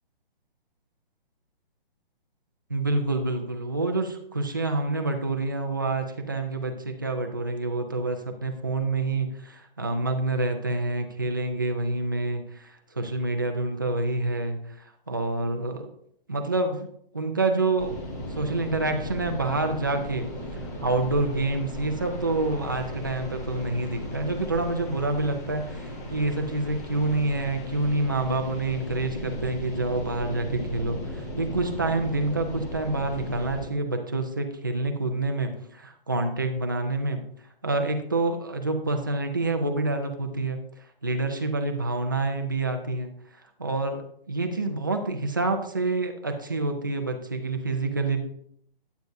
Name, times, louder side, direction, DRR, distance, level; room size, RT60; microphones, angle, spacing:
voice 1, 2.7-15.9 16.3-16.9 17.1-17.9 18.3-20.3 20.8-37.2 37.6-40.6 41.0-43.1 43.6-48.2, right 2 dB, 20° right, 5 dB, 0.5 m, -27 dB
sound 1, 17.8-33.6, equal, 15° left, 0.9 m, -36 dB
9.3 x 9.1 x 2.6 m, 0.69 s
hypercardioid pair, 175°, 30 cm